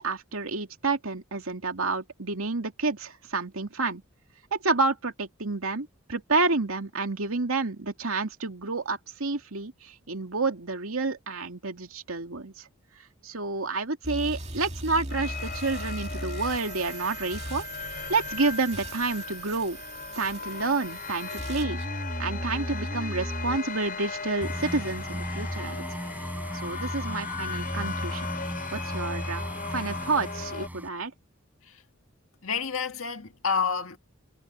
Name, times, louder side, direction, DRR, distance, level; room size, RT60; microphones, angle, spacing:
voice 1, 0.0-4.0 4.5-12.7 13.2-17.6 18.1-19.8 20.2-21.8 22.2-25.8 26.5-28.3 28.7-29.4 29.7-31.1, right 3 dB, 85° right, 2.4 m, -29 dB
sound 1, 14.0-23.6, right 1 dB, 30° right, 2.3 m, -37 dB
sound 2, 15.1-30.7, left 5 dB, 45° left, 6.2 m, -38 dB
sound 3, 24.4-30.9, equal, 10° right, 4.8 m, -35 dB
voice 2, 32.4-34.0, left 6 dB, 75° left, 1.8 m, -29 dB
head